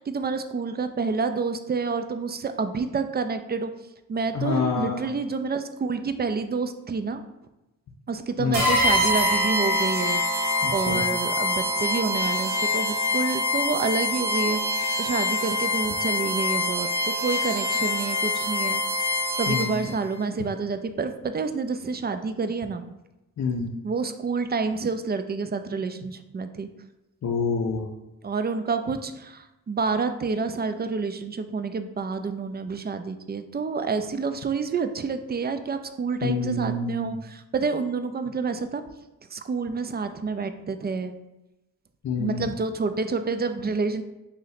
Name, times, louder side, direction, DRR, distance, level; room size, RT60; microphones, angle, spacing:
voice 1, 0.0-3.7 4.1-7.2 8.1-19.1 19.4-22.8 23.8-26.7 28.2-38.8 39.3-41.2 42.2-44.0, right 4 dB, 25° right, 9 dB, 0.4 m, -28 dB
voice 2, 4.3-5.0 8.4-8.7 10.6-11.0 19.5-19.8 23.4-23.7 27.2-27.9 36.2-37.1 42.0-42.5, left 4 dB, 45° left, 0 dB, 0.5 m, -27 dB
sound 1, 8.5-19.9, left 2 dB, 90° right, 1.0 m, -25 dB
3.1 x 2.7 x 4.0 m, 0.98 s
supercardioid pair, 45°, 38 cm